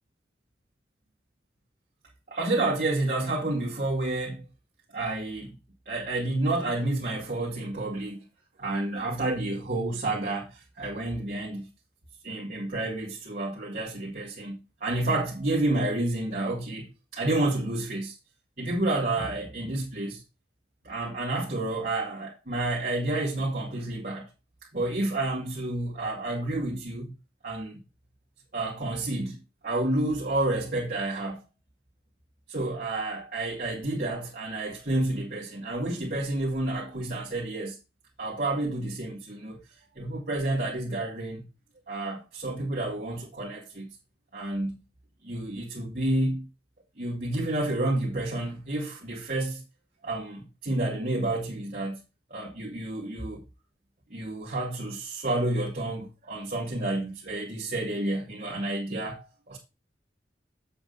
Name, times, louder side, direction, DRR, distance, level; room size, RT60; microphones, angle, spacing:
voice 1, 2.3-4.5 4.9-5.6 5.9-8.2 8.6-11.7 12.2-16.9 17.1-18.2 18.6-20.2 20.8-24.3 24.7-27.1 27.4-27.8 28.5-31.4 32.5-37.8 38.2-39.6 40.0-41.4 41.9-43.9 44.3-44.8 45.2-46.5 47.0-49.6 50.0-52.0 52.3-53.4 54.1-59.6, right 2 dB, 50° right, 2.1 m, -30 dB
7.8 x 7.1 x 3.9 m
head